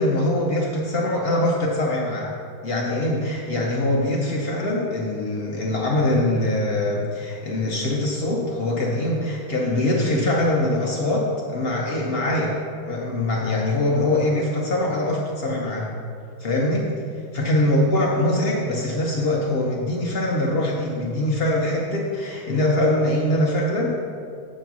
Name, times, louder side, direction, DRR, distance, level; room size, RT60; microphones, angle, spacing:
voice 1, 0.0-2.3 2.6-12.5 12.9-15.9 16.4-16.9 17.3-24.0, left 1 dB, 75° left, -2 dB, 0.5 m, -23 dB
7.9 x 4.4 x 6.0 m, 2.3 s
omnidirectional pair, 2.3 m